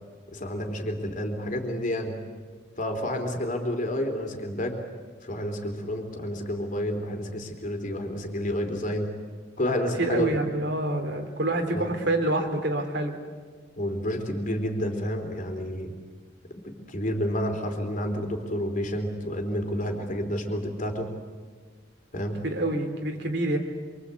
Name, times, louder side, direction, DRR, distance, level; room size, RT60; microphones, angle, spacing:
voice 1, 0.3-2.2 2.8-4.8 5.2-9.1 9.6-10.3 11.7-11.9 13.8-15.9 16.6-21.1 22.1-22.4, equal, 40° left, 5 dB, 3.6 m, -30 dB
voice 2, 10.0-13.1 22.4-23.6, right 2 dB, 60° right, 4 dB, 3.1 m, -27 dB
27.5 x 25.0 x 8.4 m, 1.5 s
head